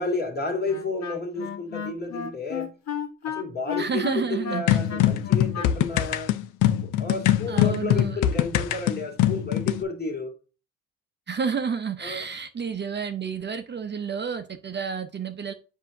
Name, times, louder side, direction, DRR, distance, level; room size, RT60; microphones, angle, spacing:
voice 1, 0.0-2.7 3.2-6.3 7.0-10.3 12.0-12.3, left 3 dB, 30° left, 2.3 m, -31 dB
Wind instrument woodwind instrument, 0.7-6.3, left 7 dB, 60° left, 1.3 m, -33 dB
voice 2, 3.8-4.8 7.5-8.2 11.3-15.5, right 6 dB, 35° right, 0.7 m, -30 dB
sound 1, 4.7-9.8, left 12 dB, 85° left, 0.7 m, -22 dB
7.4 x 2.8 x 5.8 m
cardioid pair, 90°, 30 cm